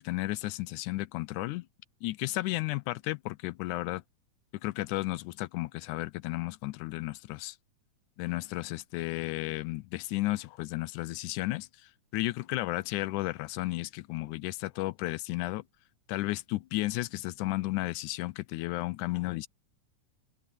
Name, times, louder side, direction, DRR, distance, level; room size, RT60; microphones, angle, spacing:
voice 1, 0.0-1.7 2.0-4.0 4.6-7.6 8.2-11.7 12.1-15.6 16.1-19.5, left 19 dB, 80° left, 2.1 m, -33 dB
omnidirectional pair, 3.6 m